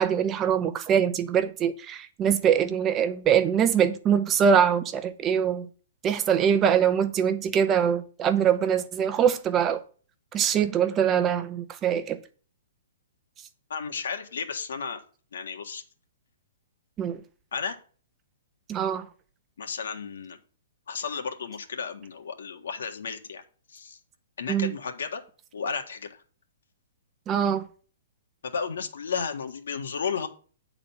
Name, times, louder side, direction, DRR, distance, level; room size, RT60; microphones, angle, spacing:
voice 1, 0.0-5.7 6.0-9.8 10.3-12.2 17.0-17.2 18.7-19.0 24.5-24.7 27.3-27.6, right 8 dB, 15° right, 0.7 m, -23 dB
voice 2, 13.7-15.0 15.3-15.8 17.5-17.8 19.6-20.4 20.9-23.4 23.7-24.0 24.4-25.2 25.5-26.2 28.4-30.3, left 6 dB, 85° left, 1.7 m, -33 dB
9.4 x 4.0 x 7.3 m
hypercardioid pair, 170°, 0 cm